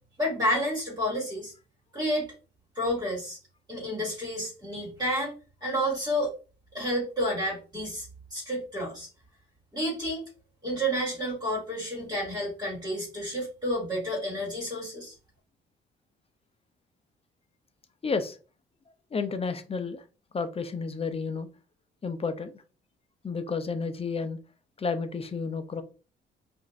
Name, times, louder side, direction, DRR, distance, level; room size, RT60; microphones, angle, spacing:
voice 1, 0.2-1.5 1.9-2.3 2.7-3.4 3.7-5.3 5.6-6.3 6.7-8.1 8.3-9.1 9.7-10.2 10.6-15.1, equal, 20° right, -4 dB, 2.3 m, -30 dB
voice 2, 18.0-18.4 19.1-20.0 20.3-21.5 22.0-22.6 23.2-24.4 24.8-25.8, left 4 dB, 30° left, 9 dB, 0.7 m, -31 dB
4.9 x 2.7 x 3.2 m, 0.35 s
cardioid pair, 90°, 20 cm